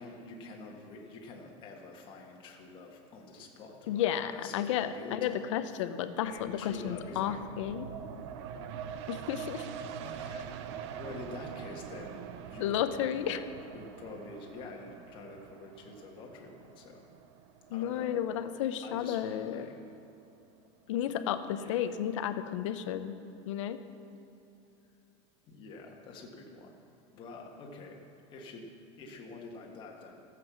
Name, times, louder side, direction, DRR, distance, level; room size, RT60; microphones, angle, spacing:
voice 1, 0.0-5.8 6.2-7.4 10.0-10.5 11.0-12.8 13.2-13.4 13.7-17.1 17.7-18.1 18.8-19.8 21.5-21.8 25.5-26.8 27.1-28.0 28.3-28.7 29.0-30.2, left 3 dB, 30° left, 0 dB, 1.6 m, -47 dB
voice 2, 3.9-7.9 9.1-9.7 12.6-13.4 17.7-19.7 20.9-23.2 23.5-23.8, left 10 dB, 90° left, 11 dB, 0.7 m, -32 dB
sound 1, 6.2-19.5 19.9-20.0, right 8 dB, 65° right, 0.7 m, -44 dB
14.0 x 7.6 x 6.1 m, 2.9 s
supercardioid pair, 160°, 15 cm